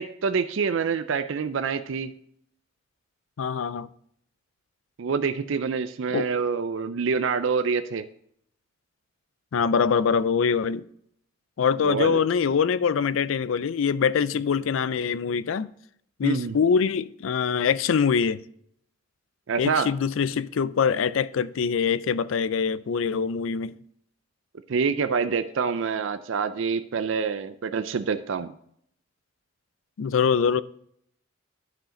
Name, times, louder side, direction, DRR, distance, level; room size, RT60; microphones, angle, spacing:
voice 1, 0.0-2.1 5.0-8.0 11.8-12.2 16.2-16.6 19.5-19.9 24.7-28.5, right 5 dB, 75° right, 0.4 m, -26 dB
voice 2, 3.4-3.9 6.1-6.3 9.5-10.8 11.6-15.7 16.2-18.4 19.6-23.7 30.0-30.6, left 6 dB, 80° left, 0.4 m, -24 dB
12.0 x 5.0 x 3.7 m
head